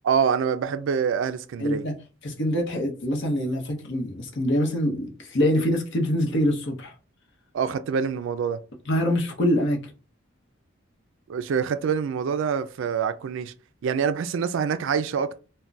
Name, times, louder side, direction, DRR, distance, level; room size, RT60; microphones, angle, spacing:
voice 1, 0.0-1.8 7.5-8.6 11.3-13.5 13.8-15.4, right 6 dB, 65° right, 0.3 m, -25 dB
voice 2, 1.6-1.9 2.2-6.9 8.9-9.8, equal, 60° left, 0.8 m, -24 dB
2.3 x 2.1 x 3.9 m
head